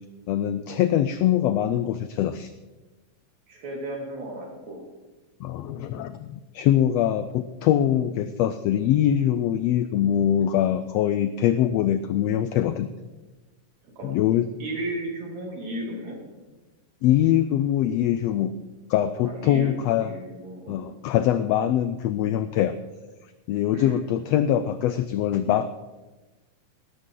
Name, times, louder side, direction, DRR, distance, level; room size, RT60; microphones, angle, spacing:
voice 1, 0.3-2.5 5.4-12.9 14.0-14.5 17.0-18.5 18.9-20.1 20.7-22.7 23.5-25.7, left 11 dB, 90° left, 11 dB, 1.4 m, -23 dB
voice 2, 3.5-4.8 13.8-14.2 14.6-16.2 19.2-20.8 23.7-24.0, right 1 dB, 65° right, -1 dB, 4.0 m, -34 dB
18.0 x 12.5 x 3.8 m, 1.2 s
omnidirectional pair, 3.5 m